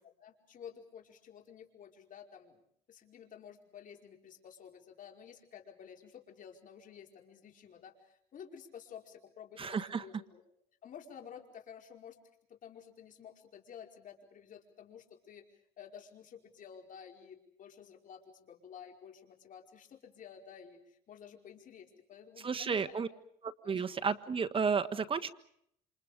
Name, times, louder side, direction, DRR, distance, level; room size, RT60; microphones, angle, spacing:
voice 1, 0.2-2.6 2.9-10.4 10.8-12.2 12.5-15.4 15.8-23.0 23.6-23.7, left 8 dB, 50° left, 3 dB, 4.9 m, -52 dB
voice 2, 9.6-10.0 22.4-23.1 23.4-25.3, right 5 dB, 30° right, 9 dB, 1.5 m, -32 dB
28.5 x 27.0 x 5.1 m, 0.70 s
cardioid pair, 110°, 17 cm